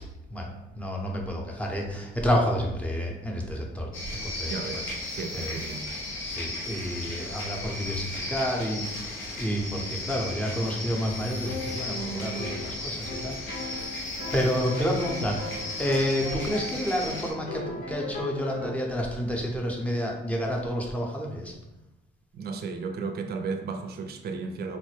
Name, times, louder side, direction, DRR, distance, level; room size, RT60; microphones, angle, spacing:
voice 1, 0.3-3.9 4.2-4.8 5.3-5.5 6.2-13.8 14.3-15.4 15.8-21.5, equal, 5° left, 0 dB, 0.7 m, -29 dB
sound 1, 3.9-17.3, left 1 dB, 80° left, 0.7 m, -35 dB
voice 2, 4.5-4.9 5.2-5.8 22.3-24.8, right 4 dB, 55° right, 6 dB, 0.4 m, -34 dB
sound 2, 11.5-17.1 17.5-18.7, left 2 dB, 45° left, 0.9 m, -38 dB
4.0 x 2.1 x 3.2 m, 0.98 s
cardioid pair, 90°, 20 cm